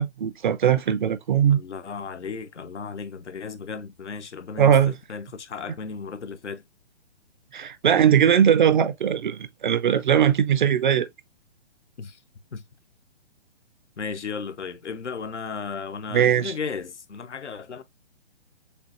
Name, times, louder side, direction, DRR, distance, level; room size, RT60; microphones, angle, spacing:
voice 1, 0.0-1.6 4.6-4.9 7.5-11.1 16.1-16.5, right 9 dB, 45° right, 0.5 m, -20 dB
voice 2, 1.5-6.6 12.0-12.2 12.5-12.6 14.0-17.8, left 5 dB, 85° left, 0.7 m, -35 dB
6.7 x 2.5 x 2.5 m
figure-of-eight pair, 130°, 34 cm